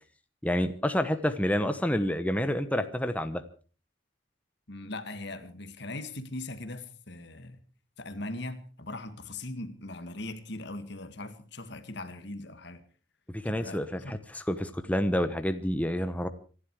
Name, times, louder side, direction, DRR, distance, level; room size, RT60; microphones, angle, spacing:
voice 1, 0.4-3.4 13.3-16.3, equal, 5° left, 1.0 m, -28 dB
voice 2, 4.7-7.6 8.0-12.8 13.5-14.2, left 2 dB, 55° left, 2.0 m, -40 dB
25.5 x 11.5 x 4.8 m
head